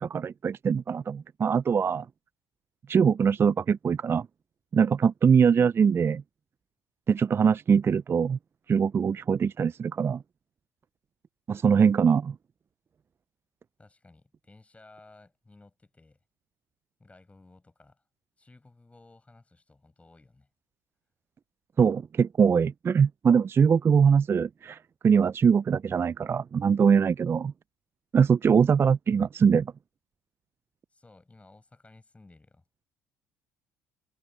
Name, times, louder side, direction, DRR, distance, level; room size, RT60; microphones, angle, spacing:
voice 1, 0.0-2.1 2.9-4.3 4.7-6.2 7.1-8.4 8.7-10.2 11.5-12.4 21.8-24.8 25.0-27.5 28.1-29.7, right 6 dB, 35° right, 0.4 m, -22 dB
voice 2, 13.8-16.2 17.0-18.0 18.4-20.5 30.9-32.6, left 2 dB, 15° left, 7.2 m, -56 dB
hypercardioid pair, 65°, 7 cm